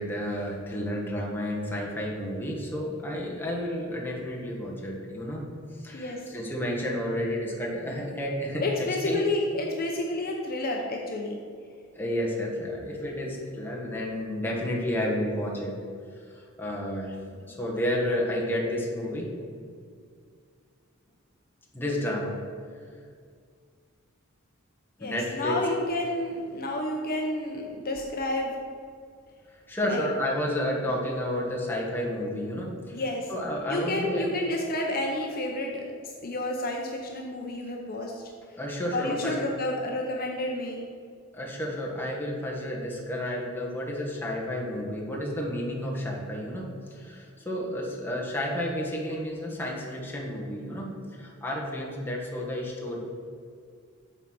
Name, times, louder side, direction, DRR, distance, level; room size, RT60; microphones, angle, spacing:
voice 1, 0.0-5.5 5.7-9.2 12.0-15.8 16.3-17.2 17.5-19.3 21.7-22.4 25.0-25.6 29.7-33.0 33.3-34.3 38.6-39.3 41.3-53.0, left 1 dB, 10° left, -3 dB, 1.2 m, -31 dB
voice 2, 5.9-6.3 8.6-11.3 25.0-28.6 29.8-30.0 32.9-33.3 33.7-35.8 36.2-38.6 38.9-40.8, left 1 dB, 45° left, 1 dB, 0.7 m, -30 dB
8.1 x 4.0 x 6.1 m, 2.1 s
head